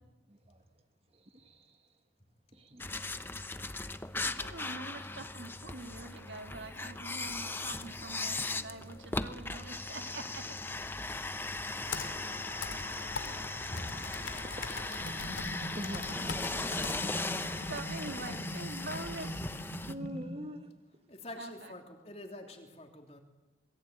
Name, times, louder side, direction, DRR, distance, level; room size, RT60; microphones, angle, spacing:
voice 1, 0.3-0.6 1.1-1.9 2.5-3.2 14.3-16.1 16.5-17.0 19.9-20.7, equal, 30° right, 6 dB, 1.5 m, -46 dB
sound 1, 2.8-19.9, left 2 dB, 10° left, 0.8 m, -38 dB
voice 2, 4.2-10.6 17.7-19.5 21.4-21.7, right 2 dB, 70° right, 6 dB, 2.4 m, -44 dB
Computer keyboard, 11.8-17.8, left 5 dB, 90° left, 2.5 m, -42 dB
voice 3, 13.2-14.1 21.1-23.2, left 1 dB, 35° left, 3 dB, 3.2 m, -46 dB
sound 2, 15.0-20.3, equal, 55° left, 2.9 m, -42 dB
27.0 x 21.5 x 9.2 m, 1.1 s
head